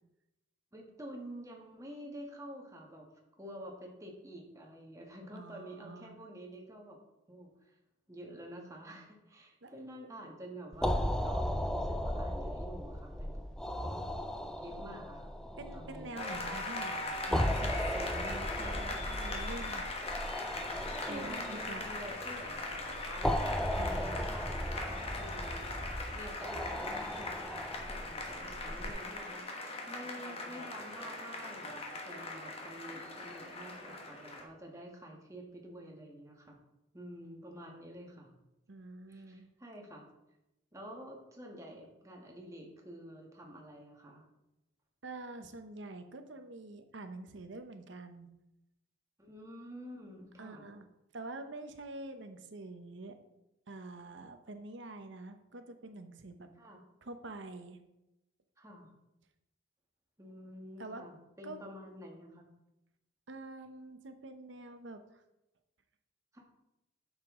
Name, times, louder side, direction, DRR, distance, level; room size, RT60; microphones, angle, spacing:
voice 1, 0.7-3.1 3.4-7.0 7.3-7.7 8.1-13.4 13.9-14.1 14.6-15.3 15.7-16.2 16.6-16.7 21.0-23.3 23.6-36.6 36.9-38.3 39.1-40.1 40.7-44.2 49.2-50.7 56.6-56.8 58.6-58.9 60.2-62.5 66.3-66.4, equal, 15° right, 0 dB, 1.5 m, -49 dB
voice 2, 5.3-6.2 9.6-9.7 15.6-19.9 21.1-21.8 23.8-24.3 38.7-39.5 45.0-48.3 50.4-50.9 51.1-53.2 53.7-56.5 57.0-57.8 60.8-61.0 61.4-61.6 63.3-65.2, right 2 dB, 70° right, 8 dB, 0.8 m, -46 dB
sound 1, 10.7-28.9, equal, 5° left, 0.4 m, -36 dB
Applause, 16.2-34.4, left 2 dB, 30° left, 1.2 m, -40 dB
9.0 x 6.7 x 3.7 m, 0.91 s
head